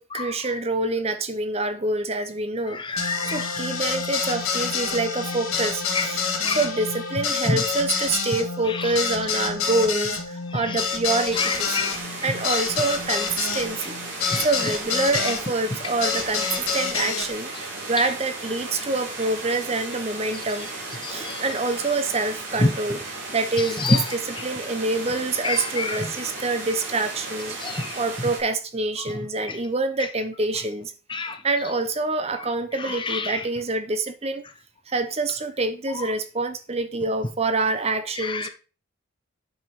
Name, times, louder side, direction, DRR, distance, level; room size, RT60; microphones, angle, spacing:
voice 1, 0.0-6.2 6.5-11.8 12.2-14.0 14.4-20.7 21.1-23.0 23.3-30.9 31.4-34.4 34.9-38.5, right 3 dB, 30° right, 0.7 m, -26 dB
voice 2, 2.7-3.7 5.9-6.1 6.4-6.6 7.5-7.6 8.7-8.9 10.5-10.8 11.3-12.3 14.2-14.5 18.0-18.1 21.0-21.4 22.6-22.7 23.8-24.0 25.4-26.0 27.6-28.0 29.5-29.6 31.1-31.4 32.8-33.4 38.2-38.5, left 2 dB, 20° left, 0.7 m, -27 dB
sound 1, 3.0-15.4 16.0-17.3, left 5 dB, 75° left, 2.0 m, -28 dB
sound 2, 11.3-28.4, right 2 dB, 60° right, 3.7 m, -35 dB
9.1 x 5.3 x 4.5 m
head